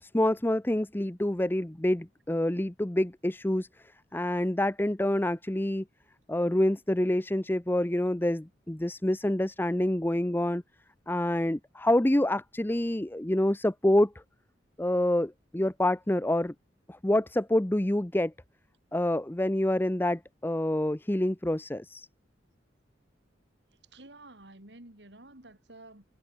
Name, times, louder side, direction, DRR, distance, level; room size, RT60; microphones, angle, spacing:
voice 1, 0.0-3.7 4.1-5.8 6.3-10.6 11.1-14.2 14.8-16.5 16.9-18.3 18.9-22.1, left 1 dB, 10° left, 0.7 m, -27 dB
voice 2, 23.9-26.0, right 2 dB, 70° right, 3.9 m, -50 dB
head